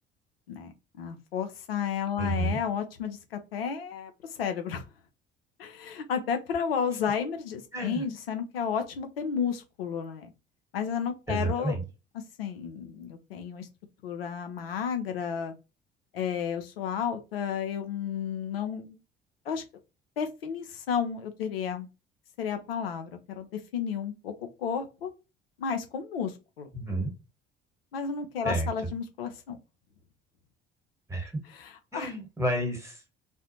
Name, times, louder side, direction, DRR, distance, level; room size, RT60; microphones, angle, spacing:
voice 1, 0.5-4.1 4.4-4.9 5.6-10.3 10.7-11.8 12.4-13.7 14.0-15.5 16.1-19.0 19.5-19.6 20.2-21.9 22.4-24.3 24.6-25.1 25.6-26.7 27.9-29.6 31.5-32.1, left 7 dB, 80° left, 6 dB, 0.5 m, -32 dB
voice 2, 2.2-2.6 7.7-8.0 11.3-11.8 26.7-27.1 28.4-28.7 31.1-31.3 31.9-33.0, right 1 dB, 10° right, 4 dB, 1.1 m, -30 dB
2.4 x 2.0 x 2.8 m, 0.28 s
figure-of-eight pair, 55°, 29 cm